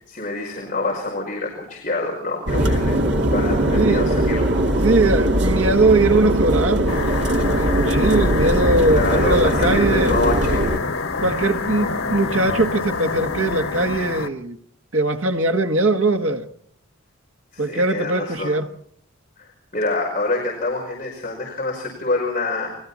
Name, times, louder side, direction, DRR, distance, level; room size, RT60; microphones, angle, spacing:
voice 1, 0.0-3.0 3.3-4.4 8.9-10.7 11.3-11.5 17.5-18.5 19.4-22.8, left 2 dB, 35° left, 5.2 m, -26 dB
sound 1, 2.5-10.8, right 1 dB, 55° right, 2.6 m, -20 dB
voice 2, 3.7-4.1 4.8-10.2 11.2-14.6 14.9-16.5 17.6-18.7, right 2 dB, 75° right, 1.7 m, -20 dB
sound 2, 6.9-14.3, left 4 dB, 85° left, 1.7 m, -26 dB
29.5 x 21.5 x 4.2 m
head